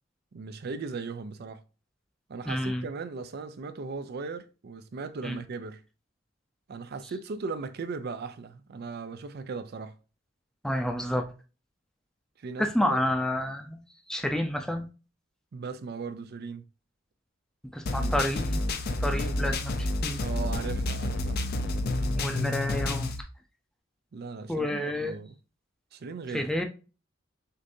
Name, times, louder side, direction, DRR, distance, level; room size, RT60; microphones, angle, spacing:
voice 1, 0.3-1.6 2.3-5.8 6.7-10.0 12.4-13.0 15.5-16.6 18.0-18.1 20.2-21.4 24.1-25.3 25.9-26.5, right 4 dB, 50° right, 0.4 m, -38 dB
voice 2, 2.5-2.8 5.2-5.4 10.6-11.3 12.6-13.8 14.1-14.9 17.7-18.6 19.0-20.2 22.1-23.1 24.5-25.2 26.3-26.6, left 1 dB, 5° left, 0.5 m, -29 dB
sound 1, 17.9-23.2, left 2 dB, 50° left, 0.5 m, -29 dB
6.5 x 2.6 x 2.6 m
head